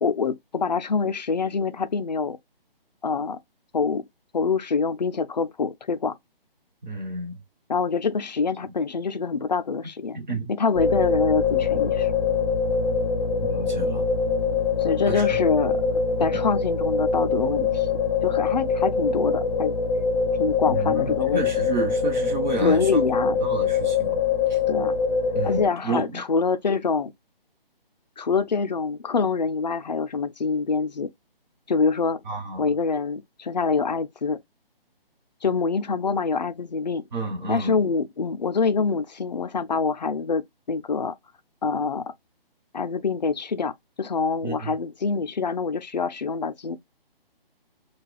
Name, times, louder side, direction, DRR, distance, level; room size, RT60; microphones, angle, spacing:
voice 1, 0.0-2.4 3.0-3.4 3.7-4.0 4.3-6.2 7.7-10.2 10.5-12.1 14.8-17.9 18.2-19.7 20.4-21.5 22.6-23.4 24.7-25.0 25.4-27.1 28.2-31.1 31.7-32.2 32.6-34.4 35.4-37.0 37.5-40.4 40.7-41.1 41.6-42.1 42.7-46.8, left 5 dB, 45° left, 0.4 m, -25 dB
voice 2, 6.8-7.4 10.1-10.5 13.4-14.1 15.1-15.4 16.2-16.4 20.6-23.1 23.4-24.2 24.5-24.6 25.3-26.2 32.2-32.7 37.1-37.8 44.4-44.8, right 3 dB, 50° right, 1.2 m, -31 dB
sound 1, 10.7-25.7, left 5 dB, 5° left, 0.7 m, -24 dB
4.5 x 2.3 x 2.2 m
hypercardioid pair, 170°, 30 cm